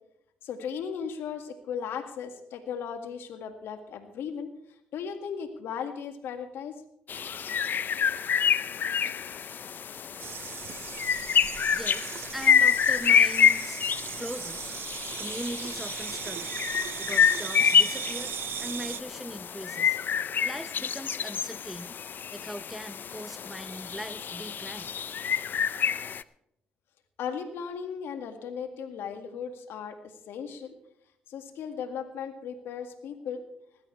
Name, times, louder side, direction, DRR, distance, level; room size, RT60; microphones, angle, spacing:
voice 1, 0.4-4.5 4.9-6.8 9.0-9.3 27.2-30.7 31.3-33.4, left 7 dB, 75° left, 7 dB, 1.9 m, -36 dB
sound 1, 7.1-26.2, left 7 dB, 55° left, 0.5 m, -27 dB
voice 2, 10.1-10.7 11.0-11.2 11.7-13.8 14.1-14.9 15.2-18.3 18.6-20.0 20.4-22.0 22.3-24.9, equal, 5° right, 15 dB, 0.7 m, -40 dB
sound 2, 10.2-19.0, right 10 dB, 65° right, 0.6 m, -38 dB
19.5 x 14.5 x 3.3 m, 0.75 s
supercardioid pair, 55°, 4 cm